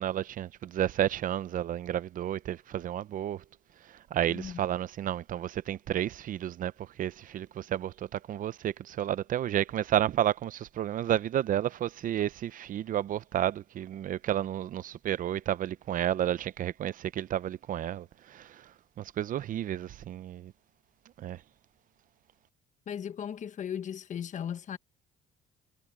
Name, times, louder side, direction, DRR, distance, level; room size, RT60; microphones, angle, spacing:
voice 1, 0.0-3.4 4.1-6.7 7.0-18.7 19.0-20.5 21.2-21.4, right 11 dB, 55° right, 0.7 m, -31 dB
voice 2, 22.9-24.8, left 8 dB, 45° left, 1.4 m, -37 dB
cardioid pair, 110°, 17 cm